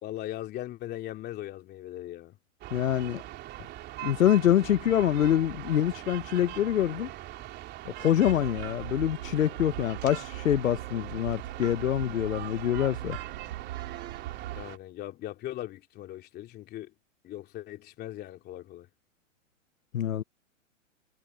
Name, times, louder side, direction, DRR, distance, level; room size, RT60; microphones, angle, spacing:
voice 1, 0.0-2.4 14.5-16.9 17.2-18.9, left 14 dB, 25° left, 3.1 m, -39 dB
sound 1, 2.6-14.8, right 15 dB, 25° right, 3.2 m, -42 dB
voice 2, 2.7-3.2 4.0-7.1 8.0-13.2 19.9-20.2, left 11 dB, 85° left, 0.9 m, -25 dB
sound 2, 8.2-14.6, right 14 dB, 60° right, 1.5 m, -41 dB
hypercardioid pair, 140°, 39 cm